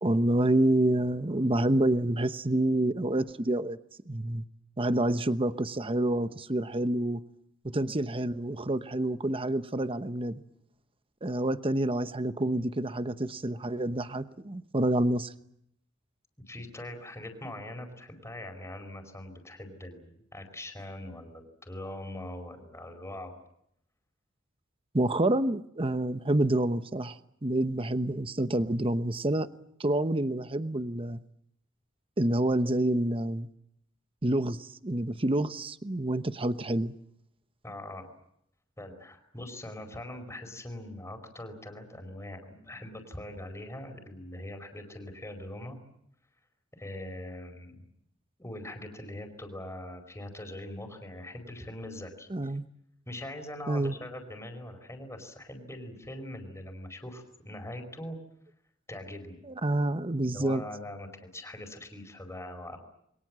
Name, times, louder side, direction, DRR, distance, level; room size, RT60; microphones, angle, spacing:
voice 1, 0.0-3.8 4.1-4.4 4.8-7.2 7.6-10.4 11.2-15.3 24.9-29.5 29.8-31.2 32.2-33.5 34.2-36.9 52.3-52.6 53.7-54.0 59.5-60.6, right 1 dB, 25° right, 11 dB, 1.0 m, -28 dB
voice 2, 16.5-23.3 37.6-38.1 38.8-45.8 46.8-47.8 48.4-52.5 53.1-58.2 58.9-59.4 60.2-62.8, left 1 dB, 15° left, 5 dB, 4.9 m, -42 dB
29.0 x 23.0 x 7.6 m, 0.76 s
head